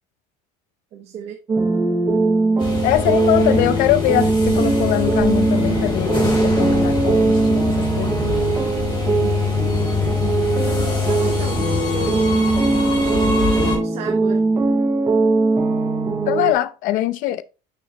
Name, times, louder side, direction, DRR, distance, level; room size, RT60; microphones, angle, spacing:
voice 1, 0.9-1.4 11.1-12.5 13.5-14.4, right 8 dB, 40° right, 0.9 m, -31 dB
sound 1, 1.5-16.5, right 3 dB, 15° right, 0.5 m, -20 dB
sound 2, 2.6-13.8, left 4 dB, 30° left, 3.1 m, -24 dB
voice 2, 2.8-8.2 16.3-17.4, left 14 dB, 50° left, 0.5 m, -22 dB
6.6 x 6.3 x 2.9 m
cardioid pair, 175°, 17 cm